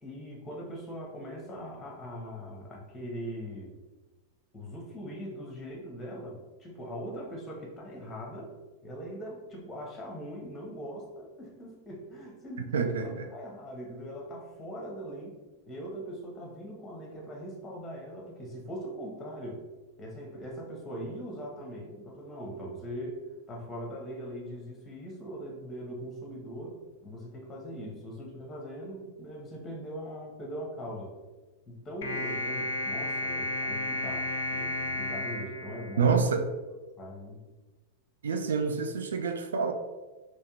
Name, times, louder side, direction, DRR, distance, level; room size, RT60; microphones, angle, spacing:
voice 1, 0.0-3.7 4.5-8.5 8.8-15.4 15.7-19.6 20.0-23.2 23.5-31.2 31.7-36.3 36.7-37.4, equal, 15° left, -1 dB, 0.9 m, -41 dB
voice 2, 12.7-13.3 36.0-36.4 38.2-39.7, right 5 dB, 65° right, 6 dB, 0.3 m, -27 dB
sound 1, 32.0-36.5, left 1 dB, 60° left, 0.4 m, -33 dB
3.4 x 2.9 x 2.9 m, 1.2 s
figure-of-eight pair, 90°, 0 cm